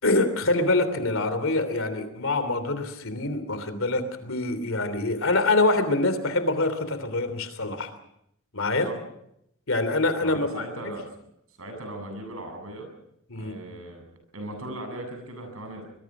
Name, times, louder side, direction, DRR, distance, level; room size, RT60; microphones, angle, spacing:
voice 1, 0.0-7.9 8.5-8.9 9.7-10.6 13.3-13.5, left 2 dB, 65° left, 11 dB, 3.1 m, -25 dB
voice 2, 10.2-11.1 11.5-12.9 13.3-14.0 14.3-15.9, right 1 dB, 75° right, 4 dB, 7.8 m, -38 dB
25.0 x 22.0 x 6.1 m, 0.76 s
head